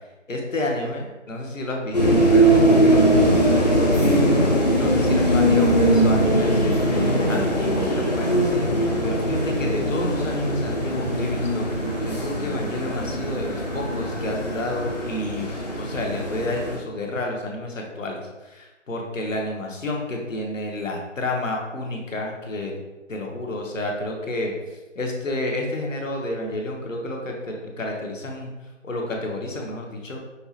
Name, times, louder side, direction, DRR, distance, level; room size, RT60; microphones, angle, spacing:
voice 1, 0.3-4.3 4.7-15.5 15.8-22.8 23.1-24.5 25.0-28.5 28.8-30.2, left 1 dB, 90° left, 1 dB, 0.9 m, -30 dB
sound 1, 1.9-16.8, right 1 dB, 35° left, 0.5 m, -21 dB
5.4 x 2.0 x 2.8 m, 1.1 s
figure-of-eight pair, 160°, 37 cm